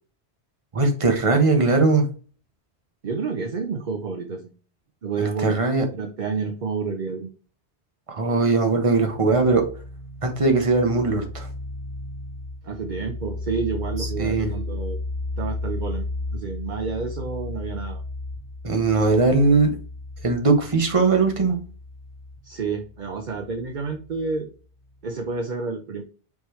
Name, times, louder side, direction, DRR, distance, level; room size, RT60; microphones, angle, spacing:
voice 1, 0.7-2.1 5.2-5.8 8.1-9.6 10.2-11.5 14.0-14.5 18.6-19.7 20.2-21.6, right 3 dB, 30° right, 4 dB, 1.1 m, -20 dB
voice 2, 3.0-4.5 5.0-5.6 5.9-7.3 12.6-15.0 15.4-16.1 16.3-18.0 22.4-24.5 25.0-26.0, right 4 dB, 50° right, 3 dB, 0.8 m, -29 dB
sound 1, 8.9-24.4, left 2 dB, 75° left, 1.0 m, -34 dB
5.4 x 3.1 x 3.2 m, 0.37 s
omnidirectional pair, 1.2 m